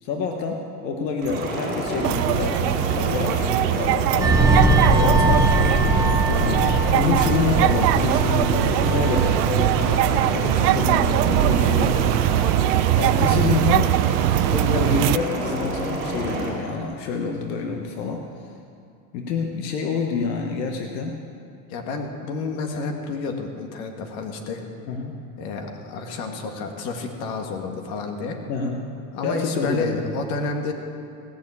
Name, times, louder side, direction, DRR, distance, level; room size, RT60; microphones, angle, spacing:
voice 1, 0.0-5.5 6.3-12.2 13.0-14.0 14.5-18.2 19.1-21.2 24.9-25.1 28.5-28.9 29.2-30.1, left 4 dB, 80° left, 2 dB, 1.5 m, -27 dB
sound 1, 1.2-16.5, right 1 dB, 25° right, 4.7 m, -29 dB
sound 2, 2.0-15.2, right 16 dB, 80° right, 0.5 m, -21 dB
sound 3, 4.2-13.2 13.6-13.8, right 2 dB, 10° right, 0.8 m, -23 dB
voice 2, 21.7-24.6 25.4-28.4 29.1-30.7, left 3 dB, 60° left, 3 dB, 2.0 m, -30 dB
17.5 x 6.9 x 8.4 m, 2.4 s
supercardioid pair, 155°, 48 cm